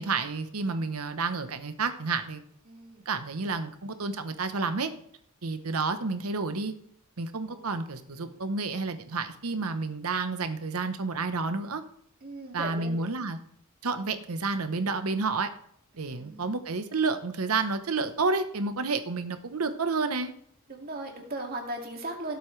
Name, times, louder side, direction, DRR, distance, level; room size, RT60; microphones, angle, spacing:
voice 1, 0.0-2.4 3.1-4.9 5.4-6.7 7.2-11.8 12.5-13.4 13.8-15.5 16.0-20.3, right 4 dB, 90° right, 9 dB, 1.0 m, -30 dB
voice 2, 2.7-3.1 7.5-7.6 12.2-13.1 15.9-16.6 20.7-22.4, right 2 dB, 45° right, 1 dB, 2.2 m, -38 dB
17.0 x 8.1 x 3.3 m, 0.68 s
head